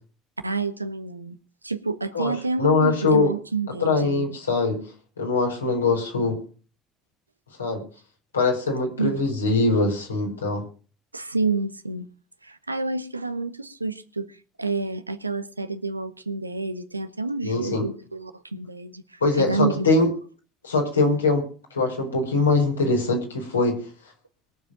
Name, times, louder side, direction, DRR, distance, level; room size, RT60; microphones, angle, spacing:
voice 1, 0.4-1.4 1.6-4.3 9.0-9.2 11.1-12.1 12.4-19.9, right 3 dB, 90° right, 0.9 m, -29 dB
voice 2, 2.6-3.3 3.8-4.8 5.2-6.4 7.6-7.8 8.3-10.6 17.4-17.9 19.2-20.1 20.6-23.9, left 3 dB, 80° left, 4.5 m, -22 dB
21.0 x 7.7 x 6.3 m
figure-of-eight pair, 60°, 0 cm